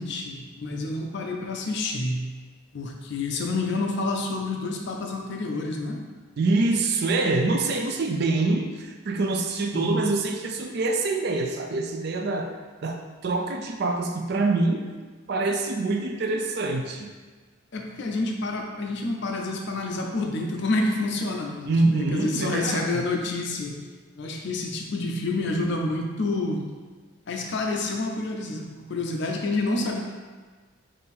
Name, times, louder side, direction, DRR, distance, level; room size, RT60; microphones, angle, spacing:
voice 1, 0.0-2.3 2.7-6.0 9.7-10.0 17.7-23.8 24.2-26.6 27.3-30.0, left 2 dB, 55° left, 1 dB, 0.5 m, -28 dB
voice 2, 6.4-12.5 12.8-14.9 15.3-17.1 21.7-23.0, right 3 dB, 50° right, 3 dB, 0.4 m, -25 dB
3.7 x 2.6 x 4.1 m, 1.4 s
head